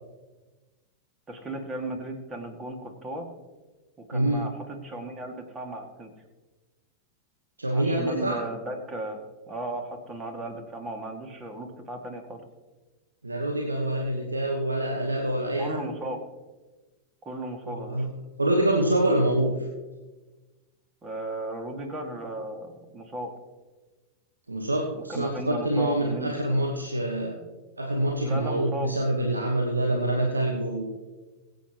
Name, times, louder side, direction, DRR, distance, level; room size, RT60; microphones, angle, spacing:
voice 1, 1.3-3.3 4.0-6.1 7.7-9.2 9.5-12.4 15.6-16.2 17.2-18.1 21.0-23.3 24.9-26.6 28.2-28.9, right 1 dB, 20° right, 4 dB, 2.2 m, -36 dB
voice 2, 4.1-4.4 7.6-8.4 13.2-15.8 17.7-18.0 18.4-19.5 24.5-27.4 27.8-30.8, right 1 dB, 80° right, 1 dB, 1.3 m, -26 dB
23.0 x 8.0 x 3.1 m, 1.2 s
figure-of-eight pair, 90°, 0 cm